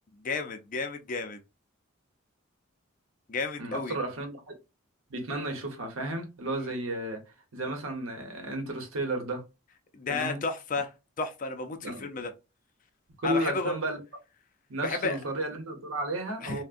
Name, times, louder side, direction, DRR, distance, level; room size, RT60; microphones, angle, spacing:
voice 1, 0.2-1.4 3.3-4.0 6.5-6.7 9.9-10.9 11.2-12.3 13.2-13.8 14.8-15.2 16.4-16.6, left 4 dB, 40° left, 0.4 m, -32 dB
voice 2, 3.6-4.4 5.1-7.2 7.5-9.4 10.1-10.4 11.8-12.0 13.2-14.0 14.7-16.6, right 1 dB, 90° right, 0.9 m, -33 dB
3.4 x 2.1 x 2.4 m
head